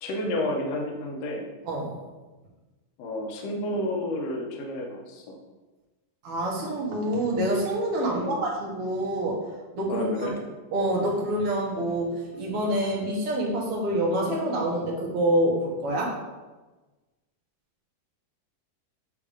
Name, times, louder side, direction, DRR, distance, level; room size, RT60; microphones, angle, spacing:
voice 1, 0.0-1.4 3.0-5.4 8.1-8.4 9.9-10.3, left 1 dB, 70° left, 0 dB, 1.6 m, -31 dB
voice 2, 1.7-2.0 6.2-9.4 9.7-10.3 10.7-16.2, right 1 dB, 55° right, -2 dB, 1.8 m, -26 dB
8.3 x 3.6 x 5.0 m, 1.2 s
omnidirectional pair, 4.1 m